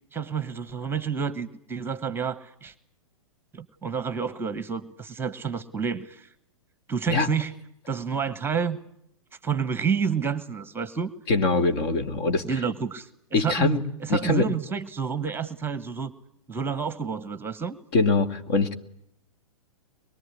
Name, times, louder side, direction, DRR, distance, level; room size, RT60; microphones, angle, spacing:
voice 1, 0.1-2.7 3.5-6.3 6.9-7.5 7.9-8.8 9.4-11.1 12.4-16.1 16.5-17.8, right 6 dB, 10° right, 15 dB, 1.2 m, -29 dB
voice 2, 11.3-12.4 13.3-13.8 14.1-14.5 17.9-18.7, left 3 dB, 50° left, 8 dB, 2.4 m, -23 dB
24.0 x 22.0 x 9.8 m, 0.75 s
figure-of-eight pair, 110°, 18 cm